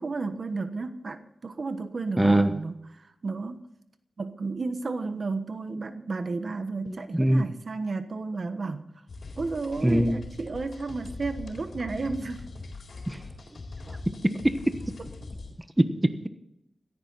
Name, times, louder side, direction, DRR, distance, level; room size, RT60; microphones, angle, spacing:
voice 1, 0.0-3.6 4.2-8.9 9.4-12.4, right 3 dB, 60° right, 1.2 m, -32 dB
voice 2, 2.2-2.5 6.9-7.5 9.8-10.2 13.1-13.2 14.1-14.7 15.8-16.3, right 1 dB, 15° right, 1.2 m, -23 dB
sound 1, 9.1-15.5, left 3 dB, 75° left, 4.0 m, -41 dB
16.5 x 14.0 x 4.1 m
wide cardioid pair, 70°, 0 cm